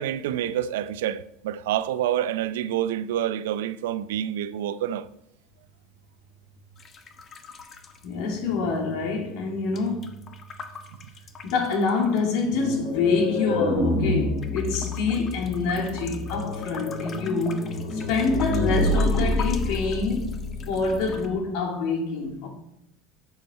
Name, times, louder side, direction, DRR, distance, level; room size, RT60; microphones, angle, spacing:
voice 1, 0.0-5.1, right 11 dB, 85° right, 0.5 m, -27 dB
sound 1, 6.8-8.8 9.1-12.4 13.1-14.0 14.4-21.3, left 5 dB, 35° left, 1.1 m, -43 dB
voice 2, 8.0-10.1 11.4-17.7 17.9-20.4 20.7-22.5, left 4 dB, 70° left, 2.7 m, -26 dB
sound 2, 12.5-21.3, left 2 dB, 85° left, 3.3 m, -28 dB
10.0 x 7.2 x 4.4 m
supercardioid pair, 100°, 0 cm